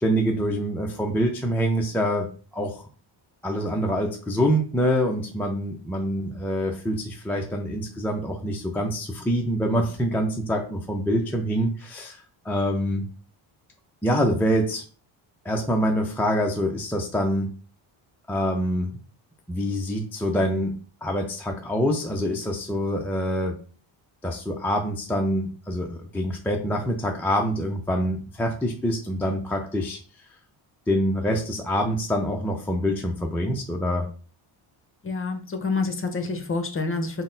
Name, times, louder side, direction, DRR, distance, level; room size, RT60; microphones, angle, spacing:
voice 1, 0.0-2.8 3.4-13.0 14.0-14.8 15.4-17.5 18.3-19.0 19.5-20.7 21.0-23.6 24.2-30.0 30.9-34.1, equal, 5° left, 0 dB, 0.3 m, -25 dB
voice 2, 35.0-37.2, left 3 dB, 25° left, 6 dB, 0.7 m, -27 dB
3.9 x 2.1 x 3.8 m, 0.39 s
cardioid pair, 100°, 49 cm